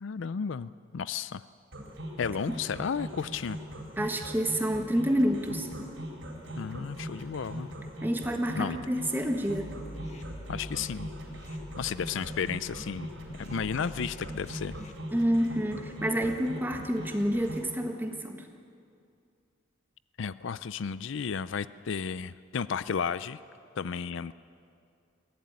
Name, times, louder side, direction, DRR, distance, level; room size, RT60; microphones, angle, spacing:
voice 1, 0.0-1.4 2.2-3.6 6.6-7.7 8.6-8.8 10.5-11.1 11.8-13.1 13.4-14.8 20.2-23.4 23.8-24.3, left 6 dB, 60° left, 16 dB, 0.4 m, -33 dB
sound 1, 1.7-17.7, equal, 60° right, 4.2 m, -40 dB
voice 2, 4.0-5.7 8.0-9.7 15.1-18.5, equal, 10° right, 4 dB, 1.5 m, -28 dB
sound 2, 9.6-14.9, equal, 35° left, 1.5 m, -46 dB
22.0 x 15.5 x 9.5 m, 2.4 s
head